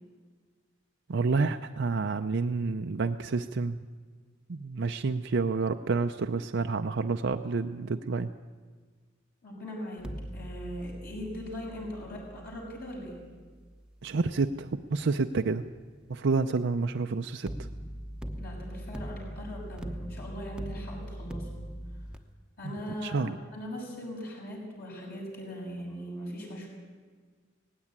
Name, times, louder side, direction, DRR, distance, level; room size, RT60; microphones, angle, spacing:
voice 1, 1.1-3.8 4.5-8.3 14.0-15.6 16.1-17.5 23.0-23.3, right 4 dB, 65° right, 6 dB, 0.6 m, -29 dB
voice 2, 9.4-13.3 18.2-21.6 22.6-26.7, equal, 55° left, -2 dB, 6.8 m, -40 dB
sound 1, 10.0-15.1 17.5-22.2, equal, 5° right, 0.9 m, -41 dB
18.0 x 16.0 x 9.7 m, 1.5 s
head